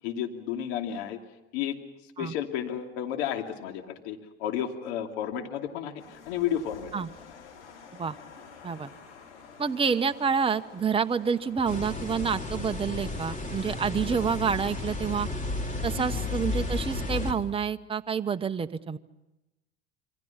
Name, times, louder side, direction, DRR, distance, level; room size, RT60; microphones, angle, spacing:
voice 1, 0.0-1.2 1.5-1.8 2.2-7.1 16.0-16.2, left 10 dB, 65° left, 4 dB, 2.8 m, -32 dB
sound 1, 6.0-12.7, left 6 dB, 85° left, 5.5 m, -49 dB
voice 2, 9.6-15.3 15.8-19.0, right 6 dB, 15° right, 9 dB, 1.0 m, -28 dB
sound 2, 11.7-17.3, left 2 dB, 20° left, 3.7 m, -33 dB
28.0 x 24.0 x 5.8 m, 0.98 s
hypercardioid pair, 75°, 34 cm